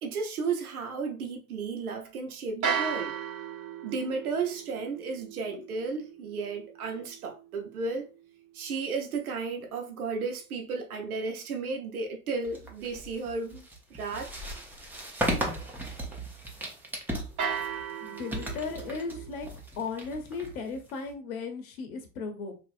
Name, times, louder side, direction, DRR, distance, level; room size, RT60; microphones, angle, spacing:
voice 1, 0.0-3.2 3.8-8.1 8.5-13.6 13.9-14.4, right 4 dB, 75° right, 0.8 m, -33 dB
sound 1, 2.6-8.8 17.4-19.3, right 7 dB, 40° right, 0.9 m, -36 dB
sound 2, 12.4-21.1, right 1 dB, 5° right, 0.5 m, -36 dB
voice 2, 18.0-19.5 19.8-22.6, left 4 dB, 70° left, 0.8 m, -36 dB
3.3 x 2.6 x 2.5 m
hypercardioid pair, 90°, 44 cm